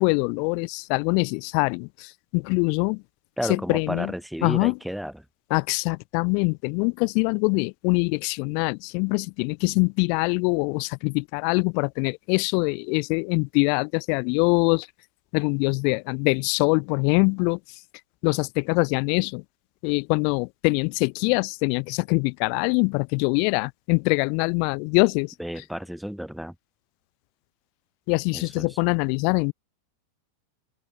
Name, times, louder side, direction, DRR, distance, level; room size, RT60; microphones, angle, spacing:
voice 1, 0.0-3.0 3.5-4.1 4.4-4.7 5.5-14.9 15.3-17.8 18.2-19.4 19.8-25.3 28.1-29.5, left 40 dB or more, 45° left, 0.4 m, -24 dB
voice 2, 3.4-5.3 25.4-26.5 28.3-28.8, equal, ahead, 1.0 m, -32 dB
open air
figure-of-eight pair, 90°, 0 cm